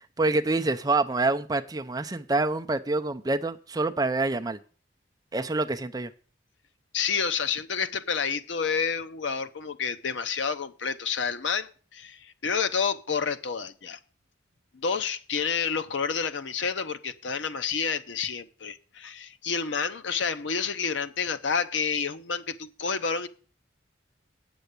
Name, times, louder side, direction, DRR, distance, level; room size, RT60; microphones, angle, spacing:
voice 1, 0.0-4.6 5.3-6.1, right 3 dB, 20° right, 0.5 m, -26 dB
voice 2, 6.9-14.0 14.7-23.3, left 6 dB, 75° left, 0.8 m, -29 dB
9.1 x 7.0 x 6.7 m
head